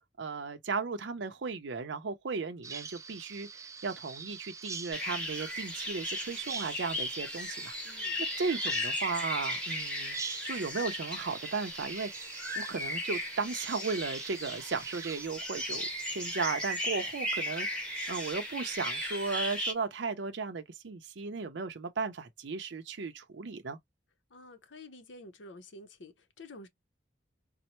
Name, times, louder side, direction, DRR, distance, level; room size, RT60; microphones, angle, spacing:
voice 1, 0.2-7.8 8.4-10.2 10.5-12.1 12.6-17.8 18.1-23.8, right 4 dB, 65° right, 0.5 m, -35 dB
Bird vocalization bird call bird song, 2.6-15.3, right 5 dB, 15° right, 0.3 m, -45 dB
sound 1, 4.9-19.7, left 1 dB, 5° left, 1.1 m, -36 dB
voice 2, 7.8-8.2 24.3-26.7, left 2 dB, 75° left, 0.7 m, -50 dB
4.2 x 2.0 x 2.9 m
head